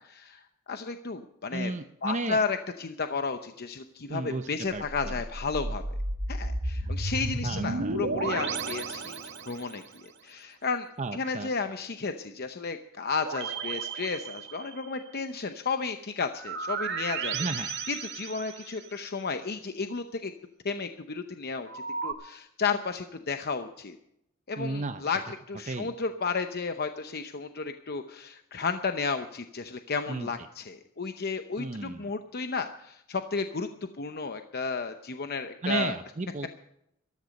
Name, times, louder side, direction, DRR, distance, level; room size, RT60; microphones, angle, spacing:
voice 1, 0.0-1.7 2.0-5.8 6.3-17.3 17.9-20.3 20.6-24.0 24.5-36.0, left 4 dB, 50° left, 8 dB, 0.8 m, -33 dB
voice 2, 1.5-2.4 4.1-5.1 6.8-7.0 7.4-8.0 11.0-11.5 17.3-17.7 24.6-25.1 25.7-25.9 30.1-30.3 31.6-32.1 35.6-36.5, right 3 dB, 35° right, 8 dB, 0.7 m, -34 dB
sound 1, 4.8-9.8 13.2-15.0 16.4-19.0 21.7-22.1, right 3 dB, 55° right, 1.7 m, -33 dB
14.5 x 13.5 x 5.2 m, 0.77 s
head